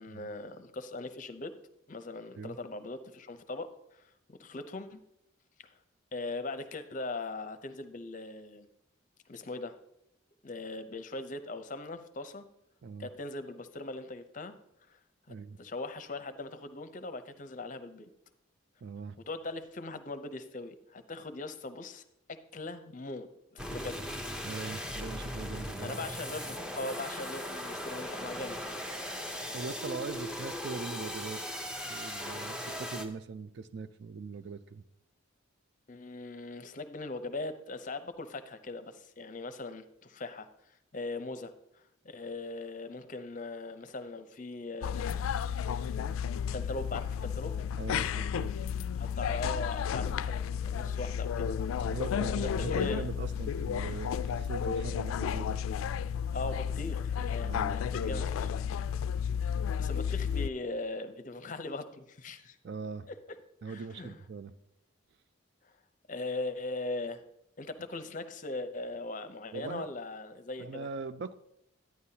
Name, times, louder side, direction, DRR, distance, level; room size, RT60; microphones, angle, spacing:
voice 1, 0.0-1.5 1.9-4.0 4.3-5.0 6.1-8.7 9.3-9.8 10.4-12.4 13.0-14.5 14.9-15.0 15.3-18.1 19.3-22.0 22.3-24.0 25.8-28.8 35.9-40.5 40.9-45.3 46.5-47.5 48.9-51.6 52.2-52.4 52.7-53.1 56.3-58.5 59.0-59.1 59.8-62.6 63.7-64.2 66.1-67.2 67.6-70.9, left 2 dB, 40° left, 10 dB, 0.6 m, -40 dB
voice 2, 18.8-19.2 24.4-26.0 29.5-31.4 31.8-34.8 47.8-48.5 51.9-55.6 57.4-58.3 62.6-63.1 63.6-64.5 69.5-69.9 70.6-71.3, right 4 dB, 55° right, 13 dB, 0.4 m, -41 dB
sound 1, 23.6-33.0, equal, 5° right, 0.6 m, -38 dB
sound 2, 44.8-60.5, left 7 dB, 90° left, 0.3 m, -32 dB
11.0 x 9.3 x 2.8 m, 0.82 s
head